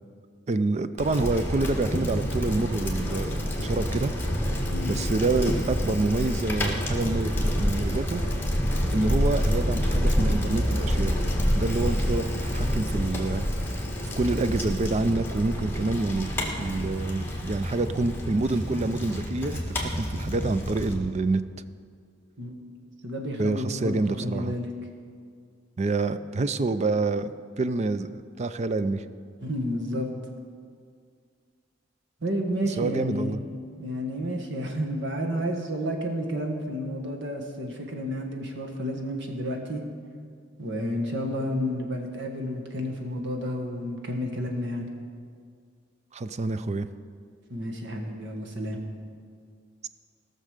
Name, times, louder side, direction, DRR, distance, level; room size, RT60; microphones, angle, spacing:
voice 1, 0.5-4.1 4.9-8.2 8.9-11.1 11.5-13.4 14.2-21.4 23.4-24.5 25.8-29.0 32.8-33.4 46.1-46.9, right 3 dB, 35° right, 12 dB, 0.5 m, -27 dB
Bicycle, 1.0-20.9, equal, 10° left, 1.8 m, -28 dB
voice 2, 23.0-24.7 29.4-30.1 32.2-33.3 33.8-39.8 40.6-44.9 47.5-48.8, equal, 65° right, 2 dB, 1.7 m, -31 dB
17.5 x 6.6 x 6.6 m, 2.1 s
head